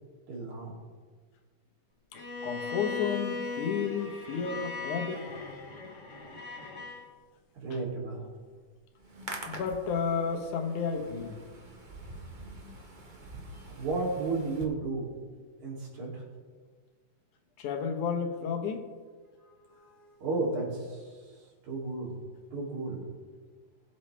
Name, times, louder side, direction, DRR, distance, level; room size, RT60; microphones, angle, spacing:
voice 1, 0.3-0.7 7.6-8.3 13.8-15.0 15.6-16.2 19.7-21.1 21.7-22.1 22.5-23.1, right 3 dB, 80° right, -5 dB, 4.4 m, -33 dB
Bowed string instrument, 2.1-7.1, left 3 dB, 45° left, 1.0 m, -38 dB
voice 2, 2.4-5.2 9.5-11.4 17.6-18.8, left 6 dB, 85° left, 4 dB, 2.7 m, -32 dB
Hands, 9.0-14.6, right 2 dB, 45° right, 0.6 m, -45 dB
21.0 x 8.0 x 3.4 m, 1.5 s
omnidirectional pair, 3.4 m